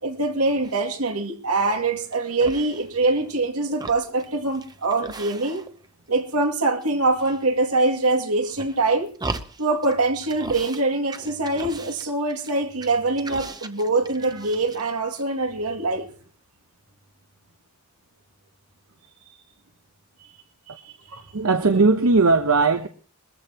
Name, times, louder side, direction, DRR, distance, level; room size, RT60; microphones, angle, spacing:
voice 1, 0.0-5.6 6.1-9.1 9.6-16.1 20.8-20.9, right 2 dB, 90° right, 2.3 m, -24 dB
sound 1, 0.6-1.0 1.5-2.1 2.4-3.4 3.7-5.9 6.1-6.9 7.2-7.9 8.4-9.9 10.2-10.8 11.1-14.9 15.1-15.2, right 3 dB, 20° right, 0.8 m, -38 dB
voice 2, 21.1-22.9, right 3 dB, 75° right, 0.9 m, -19 dB
22.0 x 14.5 x 2.9 m
head